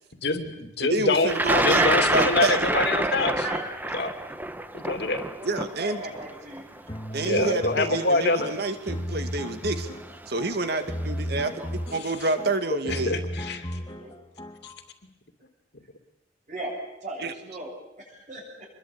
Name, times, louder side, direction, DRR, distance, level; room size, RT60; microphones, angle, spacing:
voice 1, 0.2-1.3 1.6-3.5 3.9-4.1 4.7-5.2 7.2-8.5 12.7-13.7 14.6-14.7, left 2 dB, 60° left, 7 dB, 2.7 m, -25 dB
voice 2, 0.8-1.8 2.1-2.6 5.4-6.0 7.1-10.0 10.3-11.5 11.9-13.2 17.2-17.3, right 2 dB, 55° right, 8 dB, 2.1 m, -28 dB
Thunder, 1.3-7.3 8.2-8.3 9.4-9.7 10.0-10.5, right 1 dB, 10° right, 1.0 m, -27 dB
voice 3, 1.7-3.7 5.3-6.7 10.7-10.8 11.3-11.7 13.7-14.1 16.5-16.7 17.0-18.7, right 2 dB, 40° right, -6 dB, 7.5 m, -36 dB
sound 1, 6.9-14.8, equal, 20° left, 1.4 m, -35 dB
25.5 x 21.5 x 8.7 m, 0.87 s
head